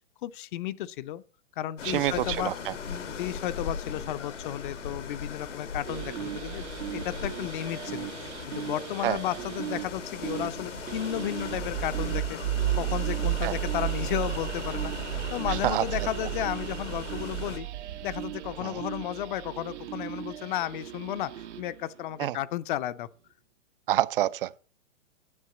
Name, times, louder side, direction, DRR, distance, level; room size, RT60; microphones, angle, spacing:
voice 1, 0.2-1.2 1.6-2.5 2.9-12.4 12.7-17.7 18.0-23.1, left 13 dB, 45° left, 0.6 m, -33 dB
sound 1, 1.8-17.6, left 6 dB, 90° left, 1.9 m, -39 dB
voice 2, 1.8-2.8 9.0-9.2 13.4-13.5 15.5-16.1 18.6-18.8 22.2-22.4 23.9-24.6, right 13 dB, 50° right, 0.5 m, -28 dB
sound 2, 5.9-21.8, right 13 dB, 75° right, 1.0 m, -34 dB
9.8 x 7.7 x 7.0 m
hypercardioid pair, 140°, 36 cm